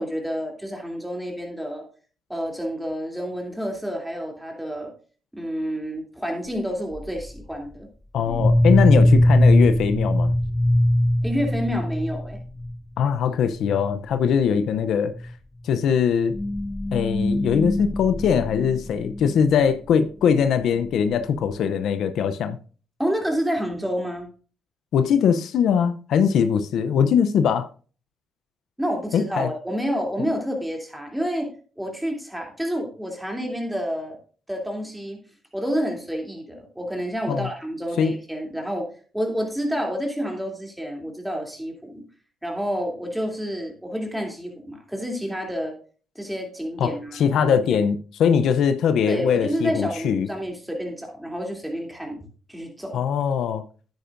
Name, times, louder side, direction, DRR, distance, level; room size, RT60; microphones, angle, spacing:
voice 1, 0.0-1.9 2.3-4.9 5.3-7.9 11.2-12.4 23.0-24.3 28.8-31.5 31.8-34.2 34.5-35.2 35.5-38.9 39.1-42.0 42.4-45.8 46.1-47.8 49.1-52.2 52.5-53.0, equal, 5° right, 2.9 m, -29 dB
sound 1, 7.0-7.4 8.3-12.8 13.1-13.3 13.6-13.9 14.1-14.4 15.1-15.2 16.2-19.3, left 1 dB, 15° left, 0.4 m, -21 dB
voice 2, 8.1-10.3 13.0-15.1 15.6-16.4 16.9-22.6 24.9-27.7 29.1-29.5 37.3-37.5 38.0-38.1 46.8-50.3 52.9-53.6, left 7 dB, 75° left, 0.6 m, -21 dB
10.5 x 9.1 x 2.5 m
cardioid pair, 80°, 0 cm